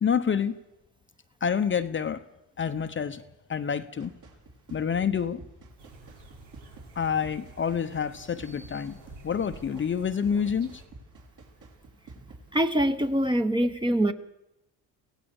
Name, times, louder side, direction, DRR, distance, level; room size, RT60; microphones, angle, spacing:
voice 1, 0.0-0.5 1.4-2.2 2.6-3.2 3.5-4.1 4.7-5.4 7.0-9.0 9.2-10.8, left 7 dB, 30° left, 9 dB, 0.8 m, -27 dB
sound 1, 4.0-13.3, right 3 dB, 50° right, 4.7 m, -51 dB
sound 2, 5.8-10.8, right 3 dB, 85° right, 4.8 m, -51 dB
voice 2, 12.5-14.1, right 1 dB, 10° right, 9 dB, 1.1 m, -24 dB
23.5 x 17.0 x 7.1 m, 0.91 s
cardioid pair, 120°, 40 cm